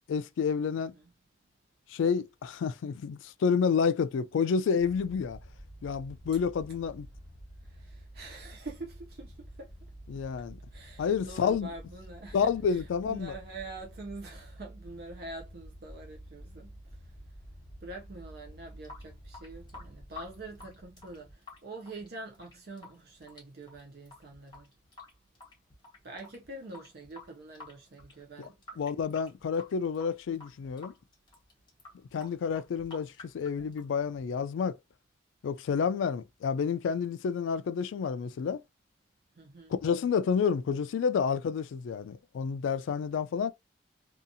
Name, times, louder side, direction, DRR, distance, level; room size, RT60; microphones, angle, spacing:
voice 1, 0.1-0.9 1.9-5.4 5.8-7.1 10.1-10.6 11.0-11.7 12.3-13.4 28.4-28.5 28.8-30.9 32.1-34.8 35.4-38.6 39.8-43.5, left 6 dB, 85° left, 0.3 m, -29 dB
sound 1, 4.8-21.3, right 1 dB, 5° left, 1.5 m, -50 dB
voice 2, 7.6-9.7 10.7-16.7 17.8-24.7 26.0-28.8 39.4-39.7, right 2 dB, 50° right, 0.5 m, -45 dB
Water tap faucet / Sink (filling or washing) / Drip, 18.6-34.6, left 3 dB, 25° left, 0.9 m, -52 dB
2.7 x 2.3 x 2.6 m
head